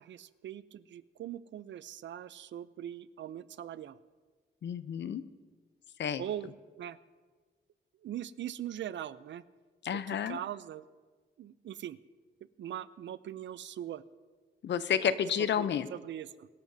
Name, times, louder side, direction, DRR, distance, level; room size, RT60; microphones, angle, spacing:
voice 1, 0.0-4.0 6.2-7.0 8.0-9.4 9.9-10.9 11.4-12.0 12.6-14.0 15.6-16.5, right 11 dB, 80° right, 16 dB, 0.5 m, -41 dB
voice 2, 4.6-5.2 6.0-6.2 9.8-10.4 14.6-15.9, left 8 dB, 70° left, 13 dB, 0.7 m, -30 dB
23.5 x 12.5 x 2.7 m, 1.4 s
wide cardioid pair, 130°, 19 cm